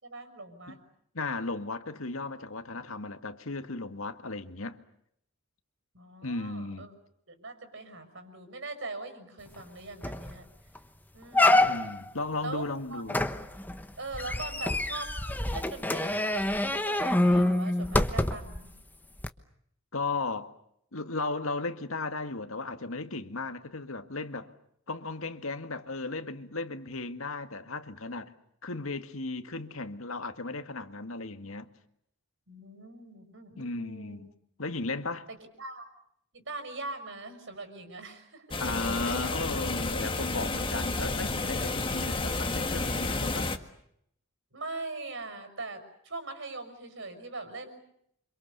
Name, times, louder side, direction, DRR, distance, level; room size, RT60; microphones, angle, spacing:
voice 1, 0.0-0.8 5.9-6.9 7.3-10.5 11.1-11.8 12.4-13.0 14.0-15.1 15.5-18.7 32.5-34.2 35.3-35.9 36.3-38.6 39.0-39.4 44.5-47.8, right 2 dB, 60° right, 6.2 m, -41 dB
voice 2, 1.1-4.8 6.2-6.9 11.6-13.2 19.9-20.5 20.9-24.5 24.9-28.3 28.6-31.7 33.6-34.3 34.6-35.3 38.6-43.5, left 3 dB, 80° left, 1.9 m, -35 dB
sound 1, 9.6-9.7 10.0-10.3 10.8-10.9 11.3-12.1 13.1-18.6 19.2-19.3, left 1 dB, 10° left, 1.2 m, -26 dB
sound 2, 38.5-43.6, left 3 dB, 25° left, 1.7 m, -31 dB
28.5 x 26.5 x 6.9 m
head